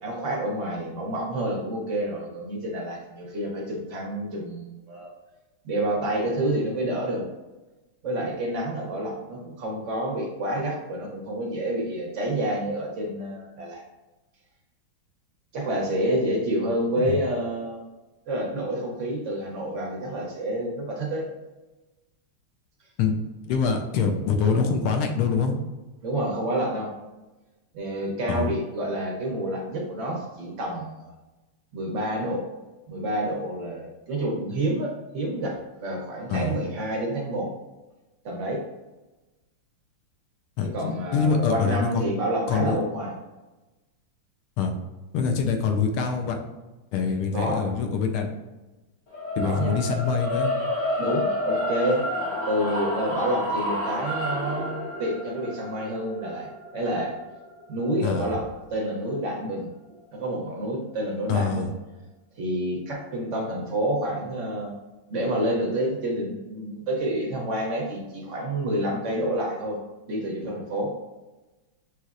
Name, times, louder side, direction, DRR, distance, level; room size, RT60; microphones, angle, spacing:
voice 1, 0.0-5.1 5.6-7.3 8.0-13.8 15.5-17.8 18.3-21.2 26.0-26.9 27.7-31.1 31.7-32.4 32.9-37.5 38.2-38.6 40.7-43.1 47.3-47.6 49.4-49.8 51.0-52.0 52.5-56.5 56.7-57.1 57.7-59.7 60.1-61.7 62.4-64.7 65.1-69.8 70.1-70.9, right 1 dB, 80° right, -1 dB, 0.6 m, -28 dB
voice 2, 23.5-25.6 28.3-28.5 36.3-36.5 40.6-42.0 42.5-42.8 44.6-44.7 45.1-46.4 46.9-48.3 49.4-50.5 58.0-58.3 61.3-61.7, left 5 dB, 80° left, 5 dB, 1.4 m, -25 dB
sound 1, 49.1-59.3, left 1 dB, 45° left, 1.1 m, -30 dB
6.1 x 2.9 x 2.4 m, 1.1 s
omnidirectional pair, 2.4 m